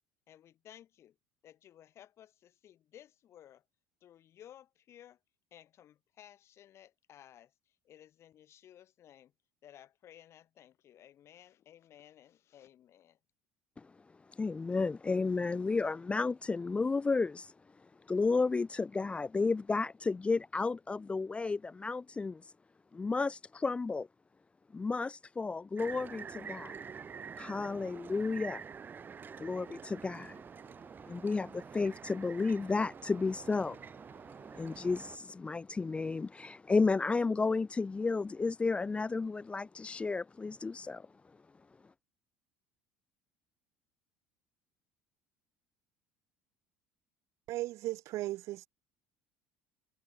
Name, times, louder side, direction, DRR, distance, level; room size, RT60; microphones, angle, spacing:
voice 1, 0.3-1.2 1.4-3.6 4.0-5.2 5.5-9.3 9.6-13.2, left 11 dB, 50° left, 5.8 m, -57 dB
voice 2, 14.3-22.5 22.9-24.1 24.7-26.8 27.4-28.6 29.4-30.4 31.1-33.8 34.1-41.1, left 4 dB, 20° left, 0.6 m, -32 dB
sound 1, 25.8-35.2, right 6 dB, 35° right, 4.1 m, -47 dB
voice 3, 47.5-48.7, right 17 dB, 60° right, 1.4 m, -36 dB
hypercardioid pair, 70°, 6 cm